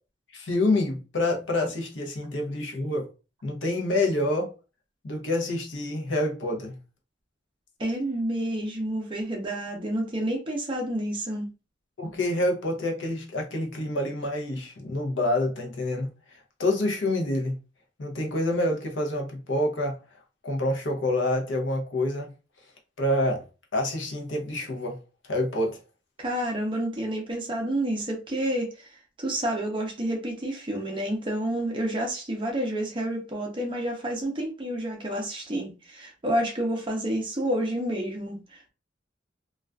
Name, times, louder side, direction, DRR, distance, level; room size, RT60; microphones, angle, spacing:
voice 1, 0.3-3.1 3.4-4.5 5.0-6.8 12.0-16.1 16.6-17.6 18.0-20.0 20.4-22.3 23.0-23.4 23.7-25.0 25.3-25.8, left 1 dB, 75° left, 0.7 m, -27 dB
voice 2, 7.8-11.5 26.2-28.9 29.2-38.7, right 1 dB, 25° right, 0.6 m, -29 dB
2.4 x 2.3 x 2.2 m
head